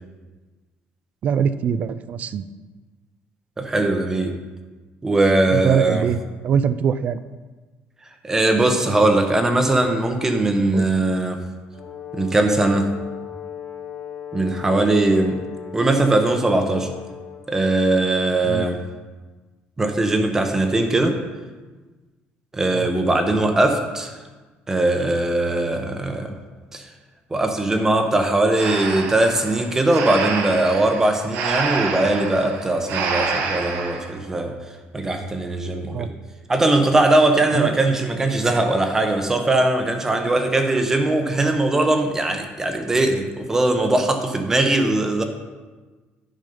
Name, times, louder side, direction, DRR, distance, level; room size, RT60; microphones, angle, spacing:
voice 1, 1.2-2.5 5.5-6.2 6.4-7.2 10.7-10.9 18.4-18.7 22.7-22.9 35.9-36.1 37.5-37.8, right 7 dB, 40° right, 14 dB, 0.4 m, -22 dB
voice 2, 3.6-4.4 5.0-6.0 8.2-11.4 12.1-13.0 14.3-15.4 15.7-16.9 17.5-18.8 19.8-21.2 22.5-24.1 24.7-26.4 26.7-26.9 27.3-34.5 34.9-36.1 36.5-45.2, right 2 dB, 15° right, 6 dB, 0.8 m, -20 dB
Brass instrument, 11.7-17.7, left 10 dB, 30° left, 0.9 m, -37 dB
Breathing, 28.5-34.1, right 4 dB, 70° right, 1.2 m, -27 dB
10.5 x 5.3 x 5.4 m, 1.3 s
cardioid pair, 170°, 4 cm